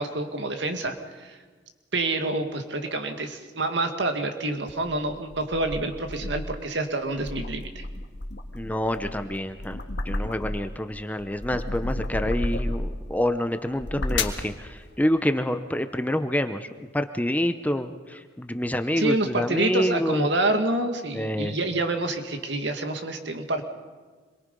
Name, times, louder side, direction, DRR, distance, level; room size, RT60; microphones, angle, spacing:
voice 1, 0.0-1.4 1.9-7.9 19.0-23.6, right 2 dB, 70° right, 6 dB, 2.0 m, -27 dB
sound 1, 4.7-6.6 7.0-10.8 11.2-13.0 13.6-14.5, left 2 dB, 65° left, 1.7 m, -32 dB
voice 2, 8.5-20.3 21.1-21.6, left 1 dB, 10° left, 9 dB, 0.7 m, -27 dB
26.5 x 22.5 x 5.4 m, 1.4 s
head